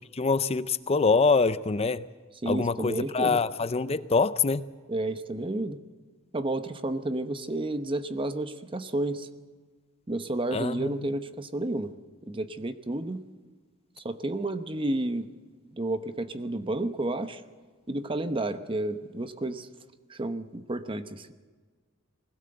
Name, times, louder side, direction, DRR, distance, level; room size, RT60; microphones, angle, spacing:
voice 1, 0.1-2.1 2.5-4.7 10.5-11.1, left 4 dB, 30° left, 0.5 m, -25 dB
voice 2, 2.4-3.4 4.9-5.8 6.3-9.3 10.1-11.9 12.2-13.2 14.0-15.3 15.7-17.4 17.9-19.7 20.1-21.3, right 2 dB, 25° right, 0.9 m, -31 dB
20.0 x 17.0 x 7.8 m
head